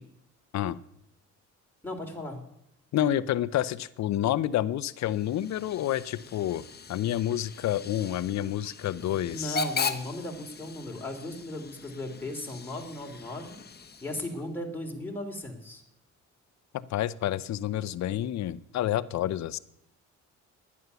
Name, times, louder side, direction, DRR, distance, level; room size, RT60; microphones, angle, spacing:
voice 1, 1.8-2.4 9.3-13.6 14.0-15.8, left 1 dB, 5° left, 0 dB, 2.9 m, -36 dB
voice 2, 2.9-9.6 16.7-19.6, left 12 dB, 65° left, 17 dB, 0.6 m, -29 dB
Hiss / Train / Alarm, 4.8-14.5, left 4 dB, 35° left, 1.0 m, -39 dB
11.0 x 9.5 x 6.8 m, 0.80 s
cardioid pair, 90°, 30 cm